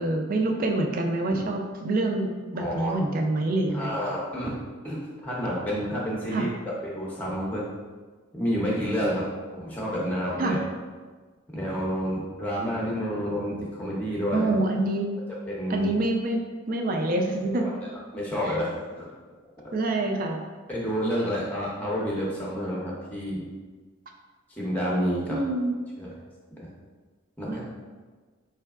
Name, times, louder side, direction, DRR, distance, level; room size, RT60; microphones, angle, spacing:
voice 1, 0.0-4.0 6.3-6.5 10.4-10.6 14.3-15.1 15.7-16.4 16.7-17.7 18.5-18.6 19.7-20.4 25.3-25.7 27.5-27.6, right 2 dB, 40° right, 3 dB, 0.4 m, -26 dB
voice 2, 2.6-2.9 3.7-7.6 8.3-9.3 9.5-10.6 11.5-14.5 15.5-15.9 17.5-19.1 20.7-23.5 24.5-25.4 26.0-26.1 27.4-27.6, equal, 10° left, -5 dB, 0.6 m, -29 dB
4.5 x 3.2 x 2.3 m, 1.4 s
head